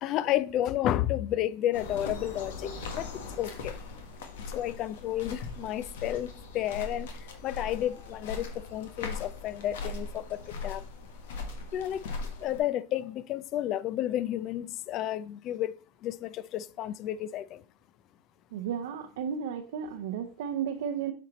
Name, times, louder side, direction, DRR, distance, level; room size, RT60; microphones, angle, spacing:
voice 1, 0.0-2.7 3.0-3.1 3.4-3.8 4.5-6.3 6.5-7.1 7.4-10.8 11.7-12.0 12.4-15.7 16.0-17.6, left 12 dB, 45° left, 0.5 m, -31 dB
sound 1, 1.7-12.6, left 3 dB, 80° left, 1.4 m, -40 dB
voice 2, 18.5-21.1, right 8 dB, 75° right, 0.7 m, -33 dB
7.7 x 4.3 x 4.0 m
hypercardioid pair, 105°, 0 cm